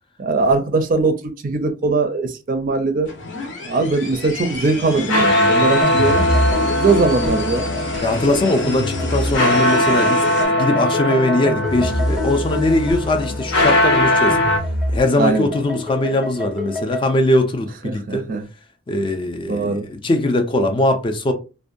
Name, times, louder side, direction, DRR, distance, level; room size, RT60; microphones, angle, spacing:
voice 1, 0.2-1.1 1.4-3.1 3.6-6.4 6.8-7.7 15.2-15.5 17.8-18.4 19.5-19.9, right 3 dB, 45° right, 0.4 m, -20 dB
sound 1, 3.1-10.5, left 3 dB, 65° left, 0.6 m, -30 dB
sound 2, 4.8-14.6, left 1 dB, 90° left, 1.1 m, -20 dB
sound 3, 5.8-17.1, left 1 dB, ahead, 0.7 m, -26 dB
voice 2, 8.0-14.4 14.9-18.3 18.9-21.3, left 1 dB, 25° left, 0.3 m, -20 dB
2.6 x 2.1 x 2.5 m
head